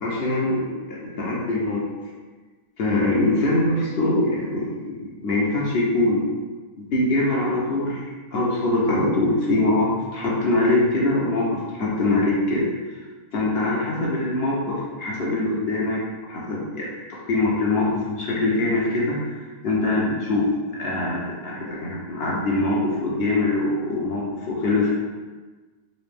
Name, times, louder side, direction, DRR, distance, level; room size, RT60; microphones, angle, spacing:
voice 1, 0.0-1.8 2.8-6.3 6.8-8.0 8.3-13.0 13.3-16.0 16.3-20.4 20.8-24.9, left 2 dB, 55° left, -5 dB, 0.7 m, -23 dB
4.0 x 2.4 x 3.3 m, 1.3 s
omnidirectional pair, 1.6 m